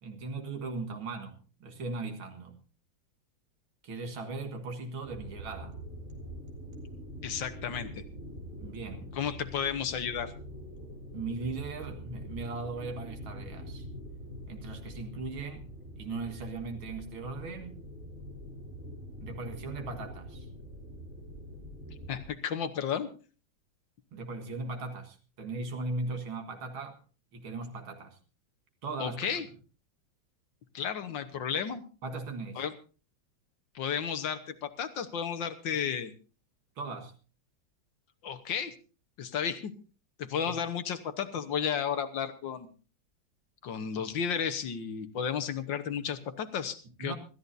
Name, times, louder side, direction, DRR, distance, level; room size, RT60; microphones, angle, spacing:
voice 1, 0.0-2.6 3.8-5.8 8.6-9.2 11.1-13.9 14.5-15.6 16.0-17.9 19.2-20.5 24.1-27.0 27.3-28.2 28.8-29.4 32.0-32.6 36.8-37.1 40.4-40.6 47.0-47.2, right 3 dB, 90° right, 4 dB, 2.5 m, -38 dB
sound 1, 5.0-22.3, equal, 40° right, 2.8 m, -44 dB
voice 2, 7.2-8.0 9.2-10.3 22.1-23.1 29.0-29.5 30.7-31.8 32.6-32.7 33.8-36.1 38.2-38.7 39.2-39.7 40.2-42.7 43.6-47.2, left 7 dB, 70° left, 10 dB, 1.8 m, -33 dB
25.5 x 13.5 x 2.7 m, 0.36 s
omnidirectional pair, 2.2 m